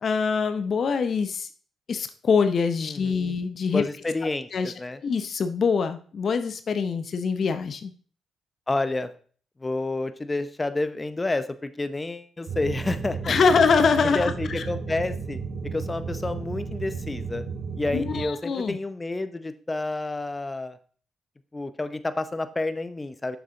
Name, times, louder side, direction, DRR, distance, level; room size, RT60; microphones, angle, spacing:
voice 1, 0.0-1.5 1.9-3.8 4.2-4.7 5.0-7.9 13.2-14.6 17.9-18.8, left 5 dB, 55° left, 10 dB, 0.7 m, -24 dB
voice 2, 2.8-3.3 3.7-5.0 8.7-9.1 9.6-13.3 14.1-15.4 15.6-17.4 17.8-20.8 21.5-23.4, left 2 dB, 25° left, 12 dB, 0.8 m, -29 dB
sound 1, 12.5-18.2, right 5 dB, 65° right, 3.8 m, -33 dB
6.8 x 6.7 x 3.8 m, 0.43 s
supercardioid pair, 55°, 0 cm